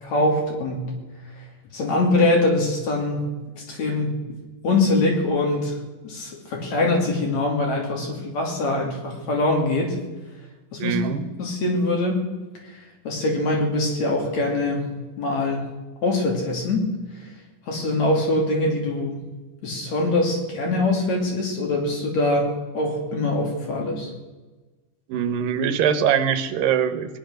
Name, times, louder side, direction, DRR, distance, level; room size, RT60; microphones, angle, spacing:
voice 1, 0.0-0.9 1.7-3.2 3.6-4.1 4.6-5.7 6.0-10.0 10.7-11.0 11.4-12.2 13.0-14.9 15.2-15.7 16.0-16.9 17.7-19.2 19.6-24.1, left 2 dB, 55° left, 0 dB, 4.0 m, -23 dB
voice 2, 10.8-11.2 25.1-27.2, right 8 dB, 85° right, 10 dB, 2.8 m, -22 dB
20.5 x 10.5 x 6.4 m, 1.2 s
omnidirectional pair, 3.9 m